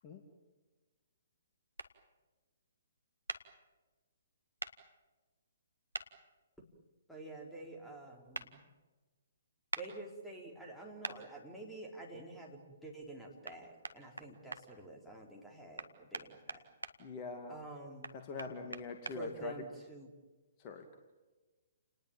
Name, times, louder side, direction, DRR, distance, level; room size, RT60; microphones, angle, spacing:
sound 1, 1.8-1.9 3.3-3.4 4.6-4.7 5.9-6.1 8.3-8.5 9.7-9.9 11.0-11.2 13.4-13.6 13.8-14.6 15.8-16.9 18.0-19.2, right 2 dB, 80° right, 1.8 m, -41 dB
voice 1, 7.1-8.6 9.8-16.6 17.5-18.1 19.1-20.1, right 2 dB, ahead, 0 dB, 4.0 m, -48 dB
voice 2, 17.0-17.6 18.1-19.7 20.6-21.0, left 4 dB, 30° left, 4 dB, 2.4 m, -43 dB
29.5 x 20.0 x 8.9 m, 1.2 s
figure-of-eight pair, 125°, 0 cm